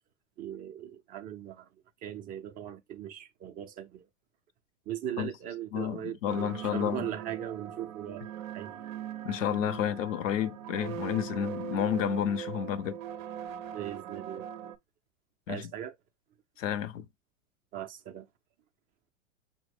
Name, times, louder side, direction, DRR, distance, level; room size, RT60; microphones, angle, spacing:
voice 1, 0.4-1.7 2.0-4.1 4.9-8.9 11.4-11.6 13.7-14.7 15.5-16.0 17.7-18.3, right 10 dB, 25° right, 0.3 m, -39 dB
voice 2, 5.7-7.1 9.2-13.0 15.5-15.7 16.6-17.1, left 10 dB, 75° left, 0.6 m, -31 dB
sound 1, 6.3-14.8, right 10 dB, 85° right, 0.6 m, -41 dB
5.9 x 2.1 x 3.2 m
hypercardioid pair, 100°, 39 cm